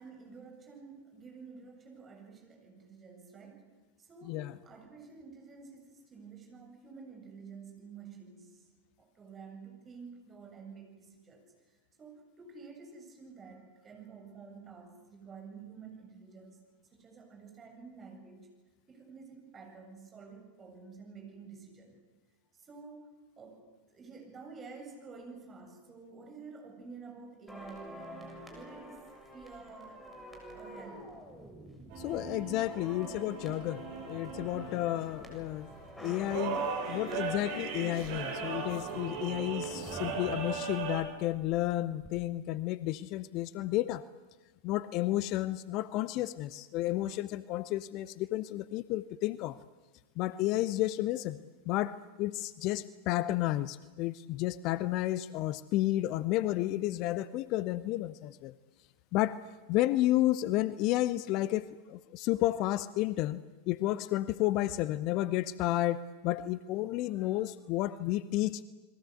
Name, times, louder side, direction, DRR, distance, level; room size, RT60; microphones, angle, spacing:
voice 1, 0.0-3.7 4.0-8.6 9.0-11.4 12.0-16.6 16.9-18.5 18.9-22.0 22.5-23.1 23.4-23.6 23.9-29.0 29.3-30.0 30.5-31.2, right 5 dB, 20° right, 3 dB, 7.7 m, -50 dB
sound 1, 27.5-41.6 41.9-42.1, right 1 dB, 5° left, 7.2 m, -48 dB
sound 2, 31.9-41.0, right 5 dB, 50° right, 6.0 m, -38 dB
voice 2, 32.0-35.7 36.0-44.1 44.6-49.6 50.2-51.4 51.7-58.5 59.1-59.4 59.7-63.4 63.7-68.6, left 15 dB, 40° left, 17 dB, 0.7 m, -31 dB
29.0 x 22.0 x 8.3 m, 1.2 s
figure-of-eight pair, 90°, 0 cm